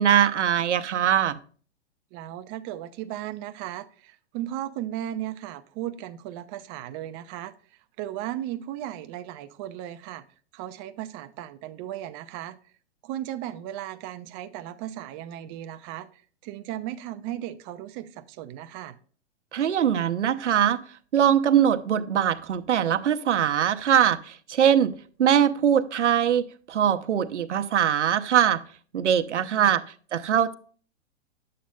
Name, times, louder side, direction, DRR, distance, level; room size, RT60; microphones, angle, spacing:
voice 1, 0.0-1.4 19.5-20.8 21.1-28.6 28.9-29.8 30.1-30.5, right 9 dB, 80° right, 0.7 m, -22 dB
voice 2, 2.1-7.5 8.0-10.2 10.5-12.6 13.0-19.0 29.3-29.7, right 12 dB, 25° right, 0.4 m, -36 dB
10.0 x 7.5 x 2.2 m
hypercardioid pair, 115°, 35 cm